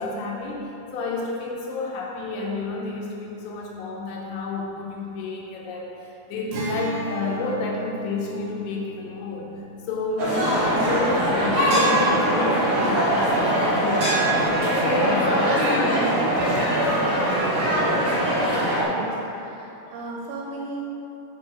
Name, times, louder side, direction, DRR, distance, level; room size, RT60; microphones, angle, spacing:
voice 1, 0.0-9.5 9.9-16.6, left 3 dB, 80° left, -2 dB, 3.5 m, -30 dB
Acoustic guitar, 6.5-12.0, right 1 dB, 70° right, 2.2 m, -35 dB
sound 1, 10.2-18.8, right 1 dB, 45° right, 1.9 m, -21 dB
voice 2, 18.9-20.8, right 2 dB, 90° right, -2 dB, 4.1 m, -35 dB
8.1 x 5.4 x 6.4 m, 2.8 s
omnidirectional pair, 5.8 m